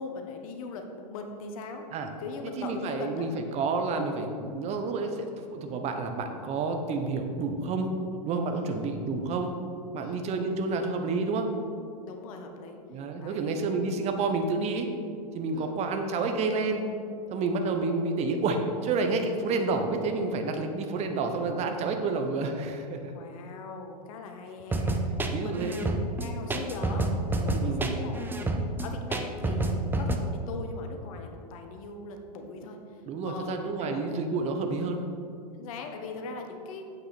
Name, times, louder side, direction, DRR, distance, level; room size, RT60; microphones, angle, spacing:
voice 1, 0.0-1.9 2.2-3.3 8.5-9.1 10.0-10.2 12.0-12.8 13.2-13.6 15.5-15.7 23.1-25.0 25.4-25.9 26.2-28.5 28.8-32.8 33.2-34.1 34.7-34.8 35.5-36.8, left 4 dB, 55° left, 4 dB, 1.2 m, -40 dB
voice 2, 2.6-7.9 8.3-9.5 9.9-11.5 12.9-14.9 15.3-16.8 17.3-23.1 25.3-25.9 27.6-28.0 33.1-35.1, right 3 dB, 30° right, 5 dB, 1.1 m, -29 dB
sound 1, 24.7-30.2, right 2 dB, 10° right, 0.7 m, -28 dB
8.7 x 8.1 x 4.3 m, 2.5 s
figure-of-eight pair, 100°, 21 cm